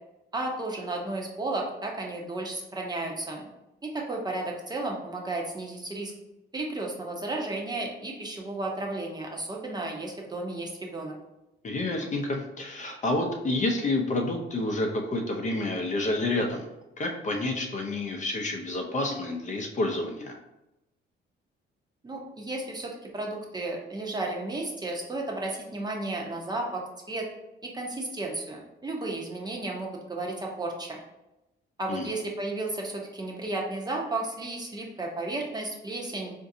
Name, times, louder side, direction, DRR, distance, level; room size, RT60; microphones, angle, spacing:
voice 1, 0.3-3.5 3.8-6.1 6.5-11.1 22.0-27.3 27.6-31.0 31.8-36.3, right 2 dB, 20° right, -1 dB, 0.7 m, -33 dB
voice 2, 11.6-16.6 17.0-20.3 31.9-32.1, left 2 dB, 40° left, 2 dB, 0.6 m, -29 dB
3.8 x 2.6 x 2.6 m, 0.94 s
cardioid pair, 90°, 20 cm